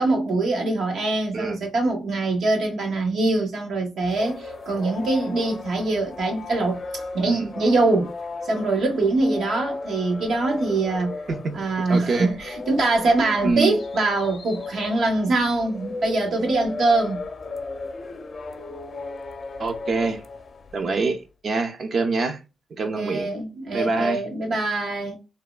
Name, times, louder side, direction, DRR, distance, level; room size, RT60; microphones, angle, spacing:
voice 1, 0.0-8.1 8.4-11.2 11.5-17.2 22.8-25.2, right 2 dB, 75° right, 0.9 m, -23 dB
sound 1, 4.0-21.0, left 3 dB, 45° left, 0.6 m, -36 dB
voice 2, 11.9-12.3 13.4-13.8 19.6-20.2 20.7-22.4 22.7-23.3 23.7-24.2, right 3 dB, 55° right, 0.6 m, -25 dB
3.5 x 2.1 x 2.2 m
cardioid pair, 90°, 0 cm